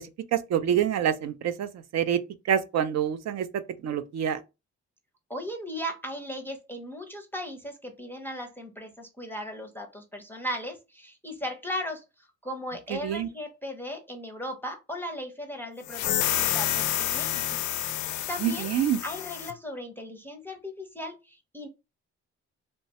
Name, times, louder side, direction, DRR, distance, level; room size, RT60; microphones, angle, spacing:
voice 1, 0.3-2.2 2.5-3.5 3.8-4.4 13.0-13.3 18.4-19.0, right 9 dB, 60° right, 0.5 m, -26 dB
voice 2, 5.3-17.4 18.3-18.7 19.0-21.7, equal, 5° left, 0.6 m, -37 dB
sound 1, 15.9-19.5, left 12 dB, 75° left, 0.5 m, -29 dB
3.1 x 2.2 x 2.8 m
cardioid pair, 90°, 30 cm